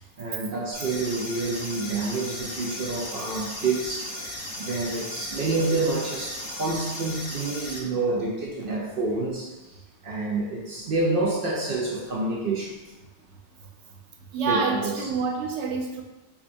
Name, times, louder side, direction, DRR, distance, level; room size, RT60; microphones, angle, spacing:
voice 1, 0.2-9.8 10.0-12.8 14.4-15.1, right 3 dB, 60° right, -2 dB, 0.7 m, -28 dB
sound 1, 0.7-7.8, left 1 dB, 80° left, 1.1 m, -36 dB
voice 2, 14.3-16.0, right 4 dB, 85° right, 1 dB, 0.9 m, -27 dB
4.9 x 2.3 x 2.5 m, 1.1 s
omnidirectional pair, 1.2 m